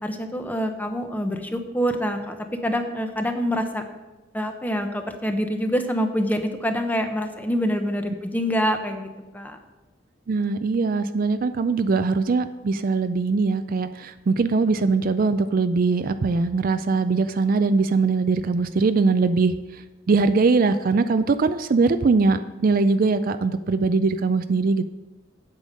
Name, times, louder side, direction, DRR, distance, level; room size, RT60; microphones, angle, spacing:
voice 1, 0.0-2.4 2.6-3.8 4.3-9.6, equal, 10° left, 6 dB, 0.8 m, -26 dB
voice 2, 10.3-24.8, right 4 dB, 45° right, 11 dB, 0.4 m, -21 dB
8.3 x 8.0 x 5.3 m, 1.1 s
head